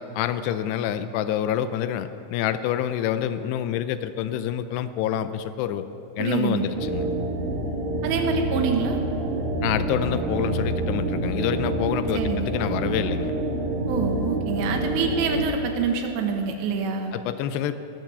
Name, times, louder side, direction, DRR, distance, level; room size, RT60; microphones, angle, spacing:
voice 1, 0.0-5.9 6.2-7.1 9.6-13.3 17.1-17.8, left 10 dB, 85° left, 12 dB, 2.7 m, -27 dB
voice 2, 6.2-6.7 8.0-9.0 12.1-12.5 13.9-17.1, right 5 dB, 90° right, 4 dB, 3.4 m, -26 dB
sound 1, 6.7-15.4, right 2 dB, 55° right, 2.3 m, -27 dB
20.0 x 7.8 x 6.8 m, 3.0 s
omnidirectional pair, 4.9 m